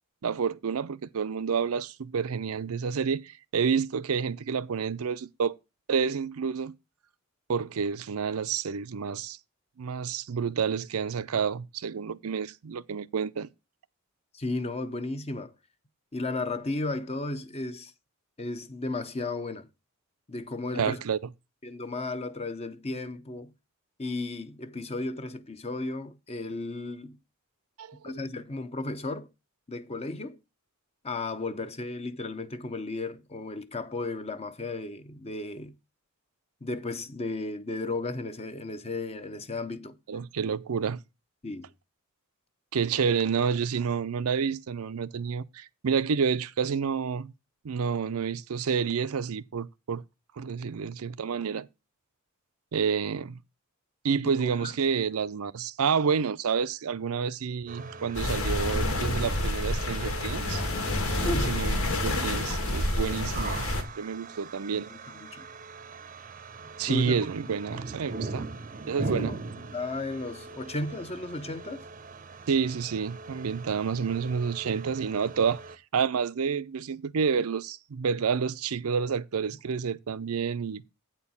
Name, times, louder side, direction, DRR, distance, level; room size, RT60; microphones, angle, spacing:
voice 1, 0.2-5.6 5.9-6.7 7.5-9.4 9.8-13.5 20.7-21.2 27.8-28.0 40.1-41.0 42.7-47.3 47.6-50.0 50.4-51.7 52.7-53.4 54.0-60.6 61.2-64.9 66.8-68.5 68.9-69.3 72.5-75.6 75.9-80.9, right 6 dB, 80° right, 0.5 m, -29 dB
voice 2, 14.3-15.5 16.1-17.9 18.4-19.7 20.3-21.0 21.6-23.5 24.0-27.2 28.0-29.3 29.7-30.4 31.0-35.7 36.6-40.0 41.4-41.7 54.4-54.7 61.2-61.6 62.1-62.3 64.7-65.5 66.9-67.3 69.0-69.4 69.7-71.9, left 2 dB, 30° left, 0.8 m, -34 dB
sound 1, 57.7-75.8, right 3 dB, 40° right, 0.6 m, -41 dB
sound 2, 58.1-63.8, left 1 dB, 75° left, 1.8 m, -28 dB
8.8 x 4.4 x 7.0 m
head